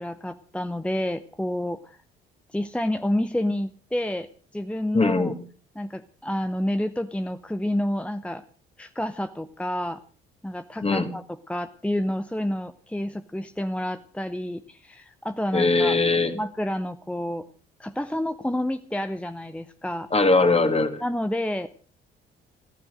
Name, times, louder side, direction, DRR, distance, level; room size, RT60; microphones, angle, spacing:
voice 1, 0.0-2.0 2.5-4.3 4.5-5.3 5.7-8.4 8.8-10.0 10.4-16.0 16.3-17.5 17.8-20.1 21.0-21.7, left 1 dB, 5° left, 11 dB, 0.8 m, -29 dB
voice 2, 4.9-5.3 10.8-11.1 15.5-16.3 20.1-21.0, left 3 dB, 20° left, 9 dB, 2.4 m, -20 dB
15.0 x 14.0 x 6.4 m, 0.42 s
figure-of-eight pair, 45°, 29 cm